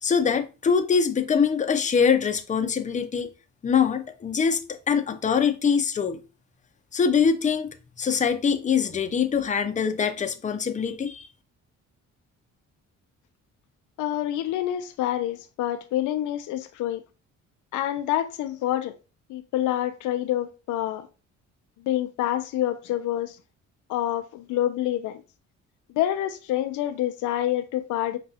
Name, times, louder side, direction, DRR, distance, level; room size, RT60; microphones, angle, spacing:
voice 1, 0.0-3.3 3.6-6.2 6.9-11.3, left 6 dB, 25° left, 0.5 m, -23 dB
voice 2, 14.0-17.0 17.7-18.9 19.3-21.1 21.8-23.4 23.9-25.2 25.9-28.2, left 12 dB, 85° left, 0.5 m, -27 dB
5.0 x 2.3 x 2.7 m
cardioid pair, 90°, 30 cm